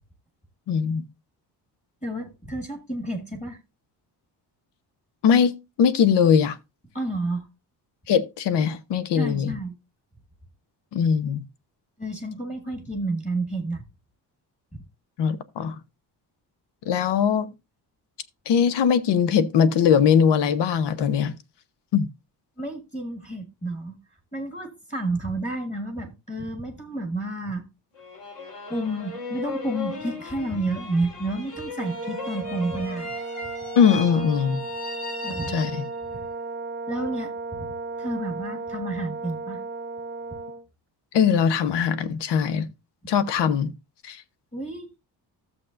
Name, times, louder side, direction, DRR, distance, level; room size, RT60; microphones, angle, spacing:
voice 1, 0.7-1.1 5.2-6.6 8.1-9.5 10.9-11.4 15.2-15.7 16.9-17.5 18.5-21.3 21.9-22.1 33.8-34.6 35.5-35.8 41.1-42.7 43.1-43.7 44.0-44.2, left 7 dB, 85° left, 1.0 m, -21 dB
voice 2, 2.0-3.6 6.9-7.5 9.2-9.7 12.0-13.8 22.6-24.0 24.3-27.7 28.7-33.1 35.2-35.6 36.1-36.3 36.9-37.7 38.0-39.6 44.5-44.9, right 2 dB, 15° left, 1.6 m, -30 dB
sound 1, 27.9-36.2, left 3 dB, 60° left, 4.0 m, -37 dB
Brass instrument, 31.8-40.6, right 3 dB, 25° right, 0.7 m, -35 dB
13.5 x 7.3 x 2.5 m
cardioid pair, 175°, 40 cm